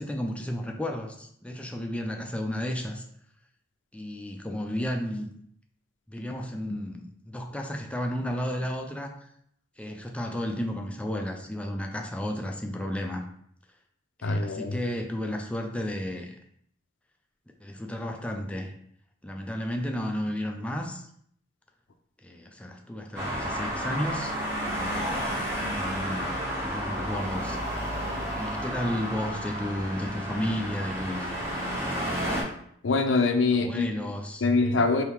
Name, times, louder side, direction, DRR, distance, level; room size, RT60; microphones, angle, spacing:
voice 1, 0.0-3.0 3.9-5.3 6.1-9.1 9.8-13.3 14.2-16.4 17.6-18.7 19.2-21.1 22.2-24.3 24.6-27.6 28.4-31.3 33.6-34.5, equal, 5° left, 2 dB, 0.4 m, -33 dB
voice 2, 14.2-14.8 32.8-33.9 34.4-35.0, left 3 dB, 70° left, 6 dB, 0.5 m, -23 dB
Traffic noise roadway noise, 23.2-32.4, equal, 15° right, 1.2 m, -31 dB
4.5 x 2.7 x 3.5 m, 0.68 s
head